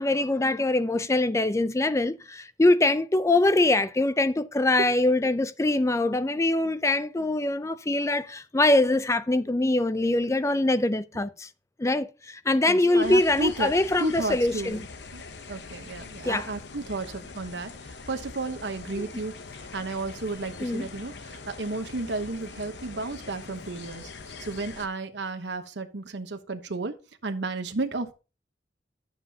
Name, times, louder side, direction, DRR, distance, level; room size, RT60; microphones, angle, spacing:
voice 1, 0.0-11.5 11.8-14.9 16.2-16.5 19.0-19.1 20.6-20.9, left 2 dB, 15° left, 0.4 m, -23 dB
voice 2, 12.7-13.7 14.0-14.8 15.1-15.2 15.5-19.4 19.7-24.1 24.4-26.9 27.2-28.1, right 2 dB, 70° right, 1.0 m, -33 dB
sound 1, 13.0-24.9, left 4 dB, 65° left, 0.8 m, -43 dB
11.5 x 7.4 x 2.8 m
head